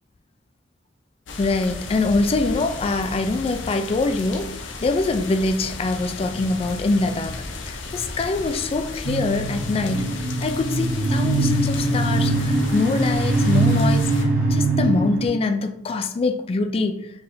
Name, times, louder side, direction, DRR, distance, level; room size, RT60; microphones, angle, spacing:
sound 1, 1.3-14.2, left 3 dB, 70° left, 0.6 m, -35 dB
voice 1, 1.4-14.1 14.5-17.1, left 3 dB, 30° left, 0.3 m, -24 dB
sound 2, 9.0-15.3, right 2 dB, 50° right, 0.8 m, -22 dB
4.7 x 3.5 x 2.6 m
head